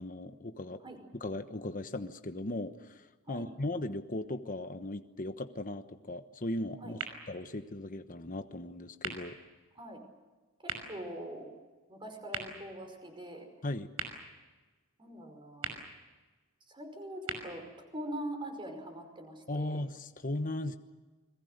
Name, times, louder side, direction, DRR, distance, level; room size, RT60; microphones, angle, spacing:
voice 1, 0.0-0.8 1.1-7.0 7.3-9.4 13.6-13.9 19.5-20.8, left 1 dB, 40° left, 8 dB, 1.1 m, -37 dB
sound 1, 6.9-18.8, right 5 dB, 75° right, 5.8 m, -46 dB
voice 2, 10.6-11.5 11.9-13.5 15.0-15.7 16.7-19.8, right 1 dB, 20° right, 5 dB, 5.2 m, -43 dB
29.5 x 22.0 x 6.7 m, 1.3 s
head